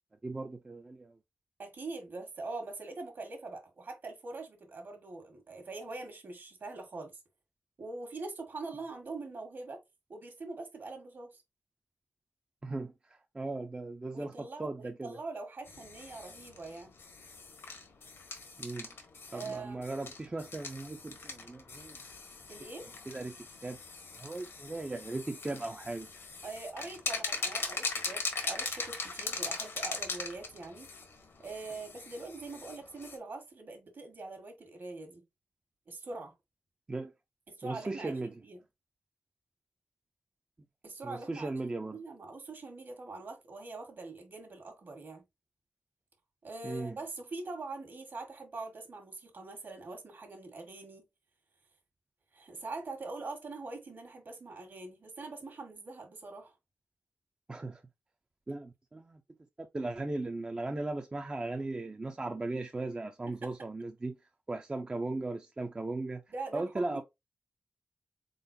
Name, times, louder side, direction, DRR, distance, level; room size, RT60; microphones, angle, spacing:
voice 1, 0.2-1.1 12.6-12.9 13.3-15.2 18.6-18.9 19.3-22.0 23.1-23.3 23.6-23.8 24.2-26.1 36.9-37.1 37.6-38.3 41.0-42.0 46.6-47.0 57.5-57.8 58.5-59.2 59.7-64.2 64.5-66.2 66.5-67.0, right 2 dB, 25° right, 0.4 m, -37 dB
voice 2, 1.6-7.1 7.8-9.8 10.1-11.4 14.1-16.9 19.3-19.8 22.5-22.9 26.4-30.9 31.4-35.2 35.9-36.3 37.5-38.7 40.8-45.2 46.4-51.0 52.3-56.5 63.3-63.5 66.3-67.0, right 3 dB, 60° right, 1.4 m, -43 dB
sound 1, 15.7-33.2, left 4 dB, 85° left, 1.4 m, -41 dB
4.2 x 3.8 x 2.6 m
wide cardioid pair, 130°, 4 cm